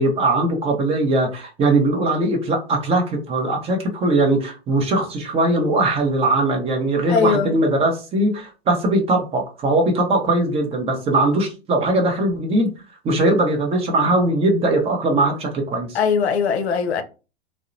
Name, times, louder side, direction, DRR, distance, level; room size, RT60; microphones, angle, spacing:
voice 1, 0.0-12.7 13.0-16.0, right 2 dB, 20° right, 0.6 m, -20 dB
voice 2, 7.1-7.6 15.9-17.0, left 5 dB, 70° left, 0.6 m, -20 dB
2.7 x 2.0 x 2.5 m
hypercardioid pair, 105°, 34 cm